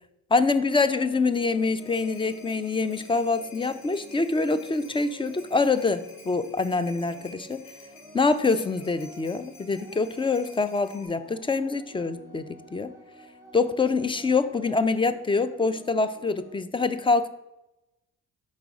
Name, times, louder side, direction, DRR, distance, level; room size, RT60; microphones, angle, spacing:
voice 1, 0.3-7.6 8.1-12.9 13.5-17.3, left 4 dB, 20° left, 13 dB, 0.3 m, -25 dB
sound 1, 0.7-16.6, right 1 dB, 10° right, 1.3 m, -50 dB
sound 2, 1.4-11.1, left 3 dB, 65° left, 1.5 m, -51 dB
5.1 x 4.1 x 4.7 m, 0.95 s
cardioid pair, 90°, 30 cm